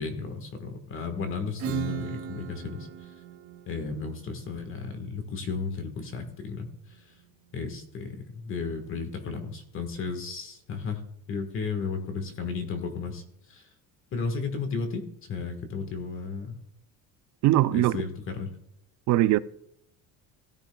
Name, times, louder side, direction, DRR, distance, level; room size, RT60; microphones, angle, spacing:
voice 1, 0.0-2.9 3.7-6.7 7.5-11.0 11.3-13.2 13.5-13.6 14.1-16.6 17.7-18.5, left 4 dB, 35° left, 1.5 m, -34 dB
Acoustic guitar / Strum, 1.6-7.0, right 8 dB, 75° right, 2.2 m, -38 dB
voice 2, 17.4-18.0 19.1-19.4, right 15 dB, 50° right, 0.5 m, -21 dB
16.5 x 10.5 x 2.3 m
cardioid pair, 165°, 34 cm